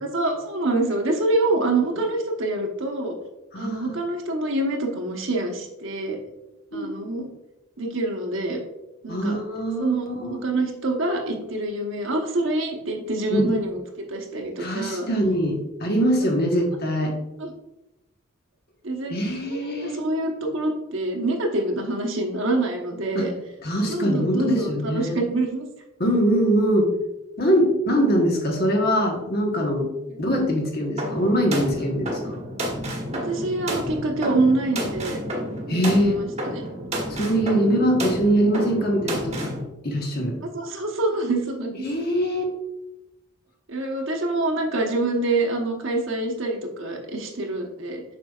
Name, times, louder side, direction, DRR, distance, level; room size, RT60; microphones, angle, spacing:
voice 1, 0.0-3.2 3.5-6.2 6.7-7.3 7.8-8.6 9.0-9.4 9.8-15.1 17.4-17.5 18.8-19.2 19.5-23.3 23.9-25.7 30.1-30.2 33.1-35.2 35.7-35.8 36.4-36.6 40.5-41.8 43.7-48.0, right 2 dB, 70° right, 2 dB, 1.1 m, -26 dB
voice 2, 3.5-4.0 6.7-6.9 9.1-10.4 13.3-13.5 14.6-17.1 19.1-20.0 23.1-23.3 23.6-25.2 26.0-26.9 27.4-29.9 30.2-32.4 35.7-36.2 37.1-39.5 39.8-40.4 41.8-42.5, equal, 50° left, 1 dB, 1.3 m, -23 dB
sound 1, 31.0-39.6, equal, 30° right, 1.2 m, -31 dB
7.2 x 5.5 x 2.4 m, 0.93 s
head